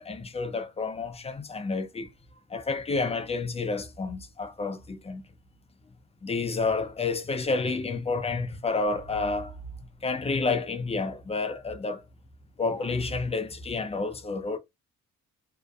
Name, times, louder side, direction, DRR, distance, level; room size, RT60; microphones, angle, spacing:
voice 1, 0.0-2.1 2.5-5.3 6.2-12.0 12.6-14.6, left 3 dB, 20° left, 0.5 m, -30 dB
2.6 x 2.1 x 2.3 m
cardioid pair, 90°, 30 cm